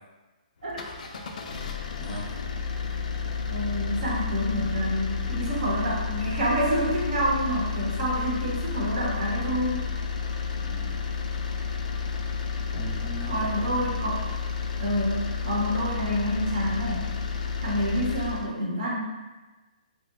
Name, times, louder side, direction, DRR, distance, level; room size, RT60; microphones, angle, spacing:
sound 1, 0.6-18.5, left 5 dB, 60° left, 0.4 m, -31 dB
voice 1, 2.0-2.4 10.5-11.0 12.7-13.8, equal, 15° left, -7 dB, 0.7 m, -38 dB
voice 2, 3.5-9.9 10.2-10.4 13.3-14.2 14.8-17.1 17.6-19.1, equal, 55° right, -5 dB, 1.0 m, -28 dB
2.8 x 2.2 x 3.5 m, 1.2 s
hypercardioid pair, 160°, 5 cm